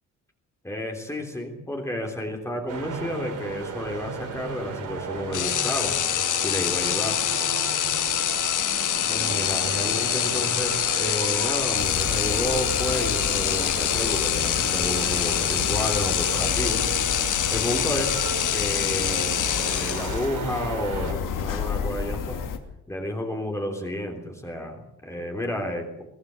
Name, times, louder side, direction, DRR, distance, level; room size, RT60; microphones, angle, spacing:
voice 1, 0.6-6.0 6.4-7.2 9.1-16.9 17.5-18.2 18.5-22.4 22.9-26.0, left 1 dB, 10° left, 2 dB, 3.3 m, -31 dB
sound 1, 2.7-21.1, right 5 dB, 70° right, 5.0 m, -34 dB
sound 2, 5.3-20.4, left 11 dB, 70° left, 1.4 m, -25 dB
sound 3, 11.8-22.6, left 7 dB, 85° left, 2.7 m, -32 dB
22.5 x 16.5 x 8.2 m, 0.83 s
cardioid pair, 150°, 32 cm